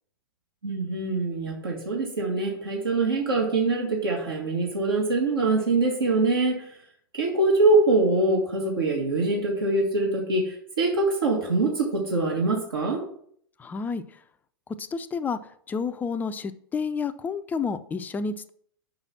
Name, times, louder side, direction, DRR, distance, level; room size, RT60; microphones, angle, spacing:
voice 1, 0.6-6.7 7.2-13.0, right 2 dB, 70° right, -1 dB, 1.6 m, -24 dB
voice 2, 13.6-14.0 14.8-15.4 15.7-18.5, left 5 dB, 15° left, 11 dB, 0.4 m, -30 dB
5.7 x 5.4 x 5.9 m, 0.64 s
figure-of-eight pair, 100°, 12 cm